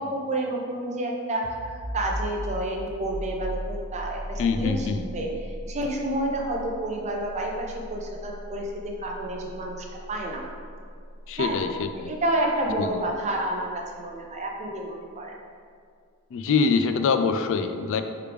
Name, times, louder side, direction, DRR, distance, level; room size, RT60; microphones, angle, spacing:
voice 1, 0.0-10.4 11.4-11.6 12.0-13.7 14.0-15.3, right 1 dB, 30° right, 0 dB, 0.6 m, -30 dB
sound 1, 1.4-12.9, equal, 10° left, 1.4 m, -38 dB
voice 2, 4.4-5.1 11.3-12.1 12.8-13.0 16.3-18.0, left 5 dB, 60° left, 8 dB, 0.3 m, -24 dB
4.7 x 3.3 x 3.4 m, 2.2 s
head